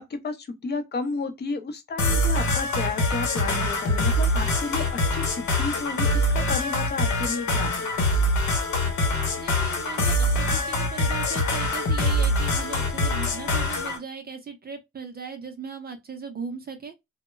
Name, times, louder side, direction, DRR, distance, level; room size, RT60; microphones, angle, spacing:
voice 1, 0.0-7.8, left 4 dB, 35° left, 0.7 m, -32 dB
sound 1, 2.0-14.0, left 1 dB, 75° left, 0.9 m, -24 dB
voice 2, 9.4-16.9, right 5 dB, 30° right, 0.6 m, -38 dB
2.1 x 2.1 x 3.0 m
cardioid pair, 90°, 30 cm